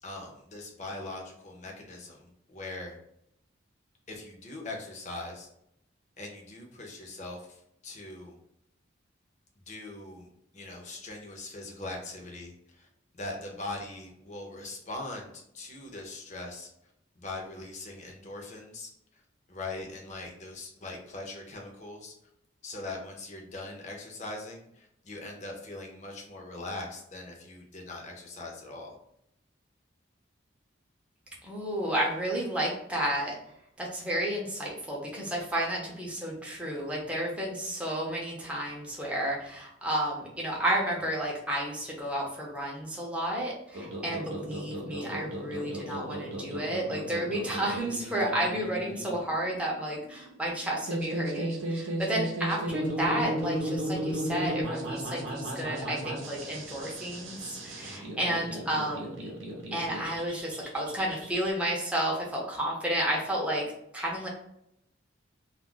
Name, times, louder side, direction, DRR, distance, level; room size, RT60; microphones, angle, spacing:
voice 1, 0.0-3.0 4.1-5.5 6.2-8.4 9.7-10.3 10.5-12.9 13.1-16.7 17.2-19.2 19.5-22.1 22.6-29.0 57.8-58.1, left 2 dB, 35° left, 0 dB, 0.6 m, -41 dB
voice 2, 31.4-33.3 33.8-59.3 59.7-63.6 63.9-64.3, right 1 dB, 5° right, -4 dB, 0.6 m, -31 dB
sound 1, 43.7-61.5, right 1 dB, 80° right, 0.7 m, -35 dB
2.3 x 2.1 x 3.6 m, 0.78 s
head